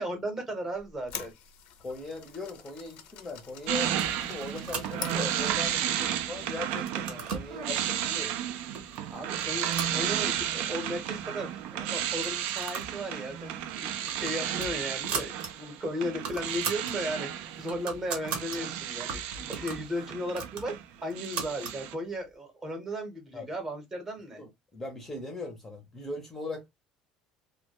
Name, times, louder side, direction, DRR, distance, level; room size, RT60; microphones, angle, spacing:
voice 1, 0.0-1.3 9.1-20.8 21.0-24.4, equal, 20° right, 0.8 m, -36 dB
sound 1, 0.8-5.9, left 9 dB, 60° left, 0.4 m, -45 dB
voice 2, 1.8-8.4 23.3-23.5 24.4-26.7, left 2 dB, 15° left, 0.6 m, -39 dB
sound 2, 3.7-20.8 21.1-21.9, right 10 dB, 70° right, 0.3 m, -33 dB
sound 3, 3.9-5.3 5.9-6.4 6.7-7.5 8.3-8.4 8.7-9.0 9.3-10.6 10.9-11.0 11.2-11.3 12.1-13.0 13.3-13.5 13.9-15.5 15.8-15.9 16.1-17.0 17.4-18.6 19.1-21.8, right 5 dB, 55° right, 0.8 m, -38 dB
2.2 x 2.1 x 2.8 m
cardioid pair, 145°, 2 cm